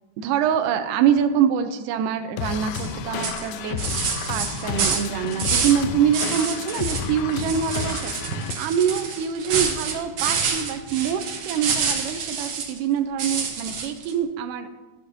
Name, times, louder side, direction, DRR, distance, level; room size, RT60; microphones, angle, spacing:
voice 1, 0.2-3.9 4.3-14.7, right 8 dB, 80° right, 7 dB, 1.9 m, -25 dB
sound 1, 2.4-8.5, left 7 dB, 80° left, 2.2 m, -31 dB
sound 2, 2.7-2.9 3.2-5.8 6.1-7.1 7.3-12.8 13.2-14.1, right 6 dB, 65° right, 1.7 m, -27 dB
13.0 x 8.6 x 2.6 m, 1.2 s
omnidirectional pair, 4.1 m